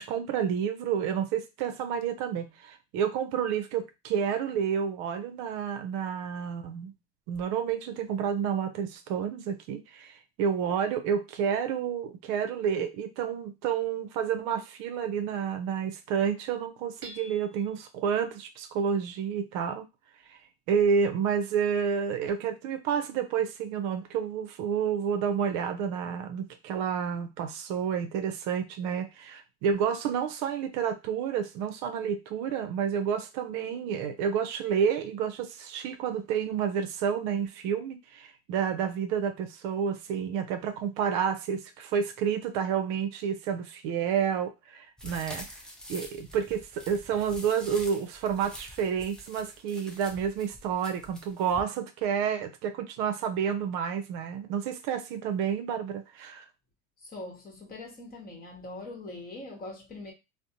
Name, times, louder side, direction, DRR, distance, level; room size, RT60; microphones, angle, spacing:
voice 1, 0.0-6.9 7.3-19.8 20.3-20.4 20.7-45.5 45.9-56.4, right 7 dB, 65° right, 0.5 m, -30 dB
Hammer / Chink clink, 17.0-17.8, equal, 45° right, 0.9 m, -47 dB
sound 1, 45.0-51.6, left 1 dB, ahead, 0.5 m, -46 dB
voice 2, 57.0-60.1, left 2 dB, 30° left, 1.0 m, -42 dB
2.5 x 2.0 x 2.7 m
supercardioid pair, 110°, 31 cm